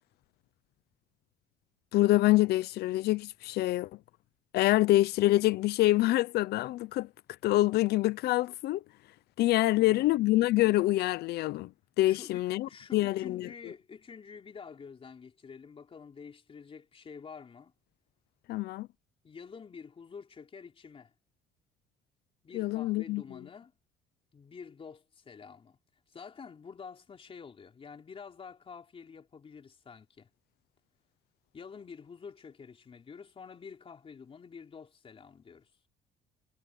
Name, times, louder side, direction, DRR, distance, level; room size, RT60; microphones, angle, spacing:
voice 1, 1.9-3.9 4.5-7.1 7.4-8.8 9.4-11.7 12.0-13.5 18.5-18.9 22.5-23.2, left 17 dB, 75° left, 0.6 m, -26 dB
voice 2, 9.7-10.3 12.0-17.7 19.2-21.1 22.4-23.7 24.3-25.8 26.1-30.3 31.5-35.7, left 6 dB, 35° left, 3.7 m, -48 dB
cardioid pair, 110°, 17 cm